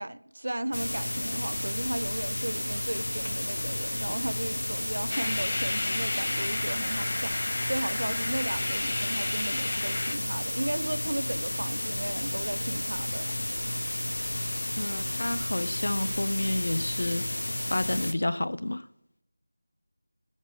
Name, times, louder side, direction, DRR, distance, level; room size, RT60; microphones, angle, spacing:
voice 1, 0.0-13.4, right 1 dB, 55° right, 0.5 m, -35 dB
sound 1, 0.7-18.1, left 1 dB, 80° left, 0.9 m, -32 dB
sound 2, 5.1-10.1, left 2 dB, 35° left, 0.8 m, -33 dB
voice 2, 14.8-17.2 17.7-18.8, left 1 dB, 50° left, 0.5 m, -30 dB
13.5 x 7.4 x 7.0 m
figure-of-eight pair, 180°, 0 cm